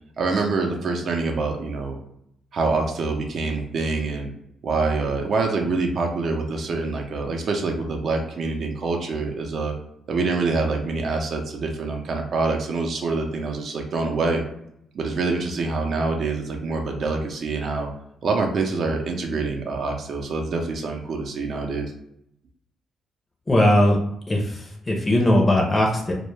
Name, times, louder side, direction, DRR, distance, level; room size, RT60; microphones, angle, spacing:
voice 1, 0.2-2.0 2.5-4.3 4.6-9.7 10.1-14.4 14.9-17.9 18.2-21.9, right 3 dB, 60° right, 2 dB, 0.5 m, -25 dB
voice 2, 23.5-24.0 24.3-26.1, left 1 dB, 25° left, 0 dB, 0.5 m, -19 dB
2.1 x 2.1 x 3.1 m, 0.75 s
cardioid pair, 90°, 0 cm